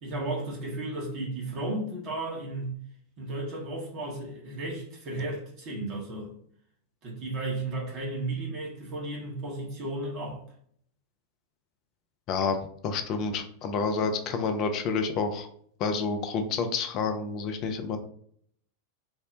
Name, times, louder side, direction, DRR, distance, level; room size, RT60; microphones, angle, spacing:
voice 1, 0.0-2.8 3.2-6.3 7.0-10.4, right 2 dB, 40° right, 0.9 m, -34 dB
voice 2, 12.8-15.5 15.8-18.0, left 4 dB, 40° left, 0.4 m, -29 dB
2.7 x 2.1 x 3.3 m
figure-of-eight pair, 90°, 0 cm